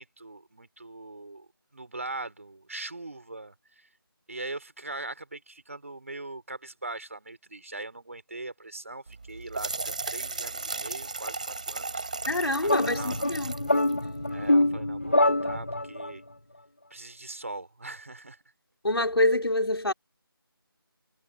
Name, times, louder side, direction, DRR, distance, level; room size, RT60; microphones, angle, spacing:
voice 1, 0.0-3.9 4.3-12.1 12.6-13.4 14.3-16.2 16.9-18.4, right 2 dB, 35° right, 4.4 m, -41 dB
sound 1, 9.1-14.6, right 3 dB, 20° right, 3.0 m, -36 dB
voice 2, 12.3-13.7 18.8-19.9, left 1 dB, 90° left, 3.7 m, -26 dB
sound 2, 12.7-16.1, left 1 dB, 30° left, 0.9 m, -25 dB
figure-of-eight pair, 180°, 12 cm